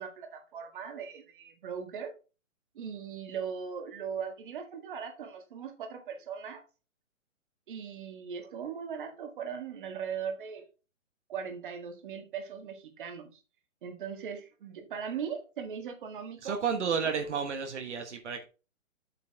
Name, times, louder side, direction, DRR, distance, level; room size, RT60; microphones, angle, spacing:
voice 1, 0.0-2.1 2.8-6.6 7.7-10.7 11.3-13.4 13.8-16.5, right 7 dB, 40° right, 5 dB, 1.8 m, -39 dB
voice 2, 16.4-18.4, right 6 dB, 60° right, 5 dB, 1.5 m, -31 dB
8.4 x 6.8 x 3.6 m, 0.32 s
hypercardioid pair, 170°, 40 cm